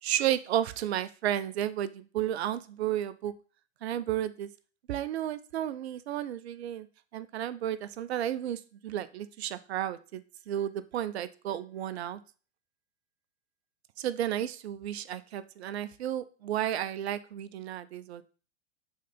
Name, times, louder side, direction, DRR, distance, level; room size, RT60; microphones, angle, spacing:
voice 1, 0.0-3.3 3.8-4.5 4.9-6.9 7.1-12.2 14.0-18.2, right 11 dB, 65° right, 14 dB, 0.7 m, -32 dB
6.5 x 3.9 x 5.2 m, 0.37 s
hypercardioid pair, 110°, 35 cm